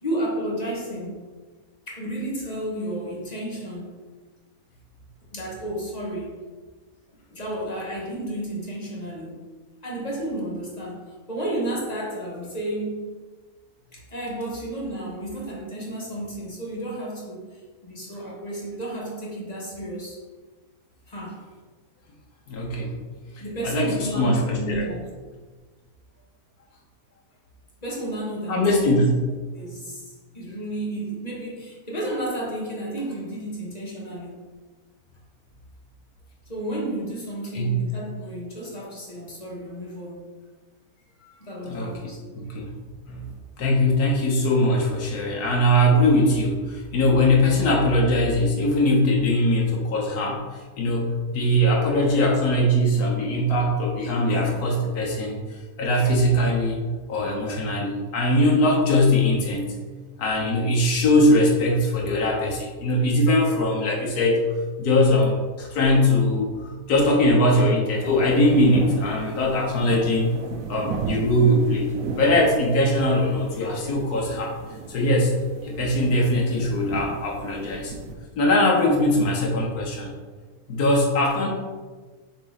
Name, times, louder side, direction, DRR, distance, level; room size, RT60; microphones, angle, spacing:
voice 1, 0.0-1.2 1.9-4.0 5.3-6.4 7.3-9.4 9.8-13.1 13.9-20.2 21.1-21.4 23.4-25.0 27.8-29.1 29.5-34.5 36.5-40.3 41.4-42.2, right 1 dB, 25° left, -4 dB, 1.6 m, -32 dB
voice 2, 22.5-22.9 23.6-24.9 28.5-29.1 37.5-37.8 41.7-42.7 43.1-43.3 43.6-50.4 50.8-55.4 55.8-56.8 57.1-59.7 60.2-64.4 64.8-70.3 70.7-71.9 72.2-74.5 74.9-75.4 75.6-77.9 78.3-80.1 80.7-81.5, left 1 dB, 90° left, -2 dB, 1.6 m, -21 dB
sound 1, 67.9-78.1, right 4 dB, 70° right, 1.1 m, -35 dB
6.7 x 4.3 x 4.0 m, 1.4 s
omnidirectional pair, 1.6 m